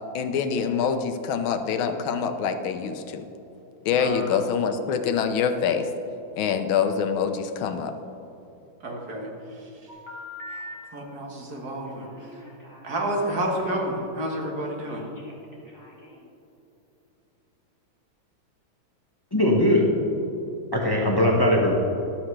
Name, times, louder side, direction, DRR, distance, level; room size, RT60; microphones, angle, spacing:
voice 1, 0.1-3.2 3.8-5.8 6.4-7.9, left 7 dB, 80° left, 8 dB, 1.5 m, -25 dB
voice 2, 4.0-4.4 8.8-9.3 9.5-9.7 10.5-12.4 12.8-15.0, right 1 dB, 55° right, 0 dB, 1.9 m, -30 dB
Telephone, 9.9-10.7 11.8-14.0 14.8-16.3, left 1 dB, 10° right, 1.7 m, -43 dB
voice 3, 19.3-19.9 20.7-21.7, left 1 dB, 15° left, -1 dB, 0.9 m, -20 dB
13.0 x 12.0 x 3.3 m, 2.9 s
omnidirectional pair, 2.2 m